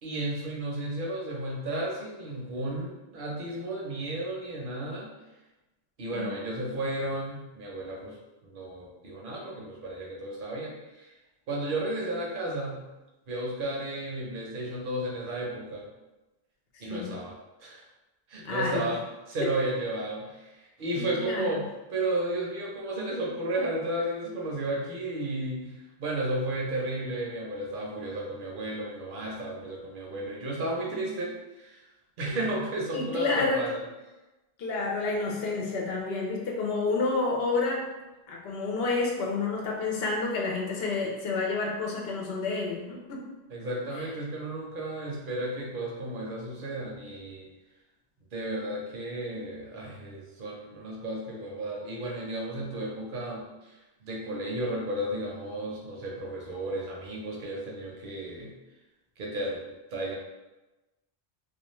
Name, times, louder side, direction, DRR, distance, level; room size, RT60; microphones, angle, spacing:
voice 1, 0.0-5.1 6.0-8.2 8.4-11.1 11.5-12.9 13.3-15.9 16.8-17.3 17.6-17.8 18.3-19.0 19.3-31.9 32.2-33.8 43.5-47.5 48.3-53.7 54.0-58.5 59.2-59.6 59.9-60.1, right 1 dB, 60° right, -2 dB, 0.8 m, -33 dB
voice 2, 18.4-18.9 21.0-21.5 32.9-33.6 34.6-37.9 38.3-43.2, left 3 dB, 70° left, -1 dB, 0.8 m, -29 dB
2.4 x 2.3 x 3.0 m, 1.1 s
omnidirectional pair, 1.1 m